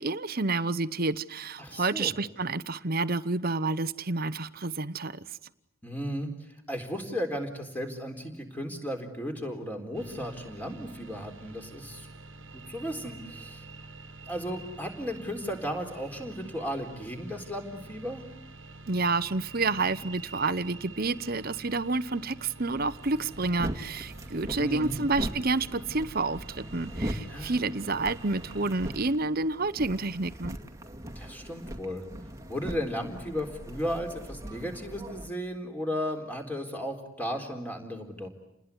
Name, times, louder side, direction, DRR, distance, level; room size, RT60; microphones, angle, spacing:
voice 1, 0.0-5.2 18.9-30.6, right 3 dB, 45° right, 15 dB, 0.9 m, -29 dB
voice 2, 1.6-2.1 5.8-12.1 12.5-13.6 14.3-18.2 24.5-25.0 27.3-27.6 31.2-32.0 32.5-38.3, equal, 10° left, 4 dB, 4.0 m, -35 dB
sound 1, 9.9-29.2, right 3 dB, 60° right, 1.6 m, -47 dB
sound 2, 22.7-35.3, equal, 15° right, 2.1 m, -40 dB
29.5 x 20.5 x 9.7 m, 0.86 s
head